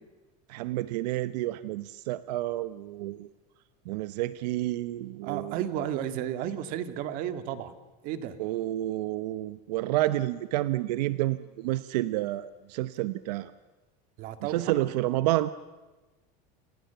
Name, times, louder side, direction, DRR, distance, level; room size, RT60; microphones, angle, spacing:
voice 1, 0.5-3.3 3.9-5.6 8.4-13.5 14.4-15.5, right 16 dB, 75° right, 13 dB, 0.9 m, -30 dB
voice 2, 5.2-7.7 8.0-8.4 14.2-14.9, right 10 dB, 40° right, 9 dB, 1.9 m, -33 dB
30.0 x 28.0 x 6.9 m, 1.2 s
cardioid pair, 180°, 21 cm